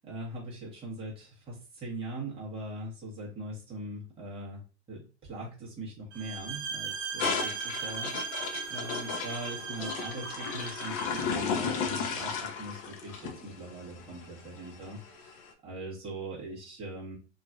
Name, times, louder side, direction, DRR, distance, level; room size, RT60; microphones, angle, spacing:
voice 1, 0.1-4.6 4.9-15.3 15.6-17.2, right 1 dB, 15° right, -5 dB, 1.3 m, -41 dB
sound 1, 6.1-11.4, right 6 dB, 75° right, 1.0 m, -38 dB
sound 2, 7.2-15.4, left 5 dB, 35° left, 0.6 m, -35 dB
3.0 x 2.6 x 2.4 m, 0.35 s
hypercardioid pair, 145°, 34 cm